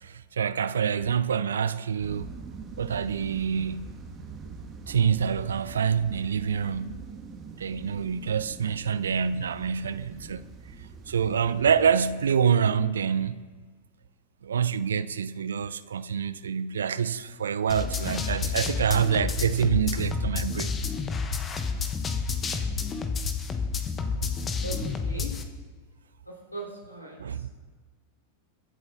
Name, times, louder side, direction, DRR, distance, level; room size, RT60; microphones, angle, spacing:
voice 1, 0.0-2.3 2.8-4.0 4.9-7.1 7.6-10.5 11.1-13.5 14.4-20.7 24.1-24.3 27.2-27.5, right 7 dB, 65° right, 0.6 m, -26 dB
sound 1, 2.0-12.2, right 5 dB, 30° right, 2.3 m, -43 dB
sound 2, 17.7-25.4, left 5 dB, 20° left, 1.4 m, -30 dB
voice 2, 24.6-25.3 26.3-27.2, right 2 dB, 85° left, 4.2 m, -39 dB
23.5 x 8.0 x 4.1 m
figure-of-eight pair, 90°, 0 cm